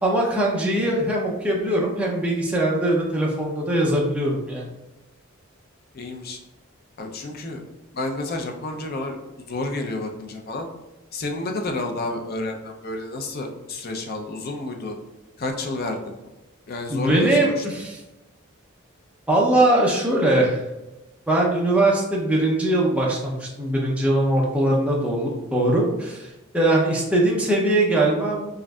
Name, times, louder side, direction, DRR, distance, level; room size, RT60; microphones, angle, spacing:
voice 1, 0.0-4.7 16.9-18.0 19.3-20.6 21.3-28.5, right 1 dB, 5° right, -3 dB, 0.5 m, -21 dB
voice 2, 5.9-6.4 7.0-7.6 7.9-10.7 11.1-15.0 15.4-16.1 16.7-17.6, left 2 dB, 45° left, 3 dB, 0.5 m, -30 dB
4.9 x 2.5 x 2.3 m, 1.0 s
head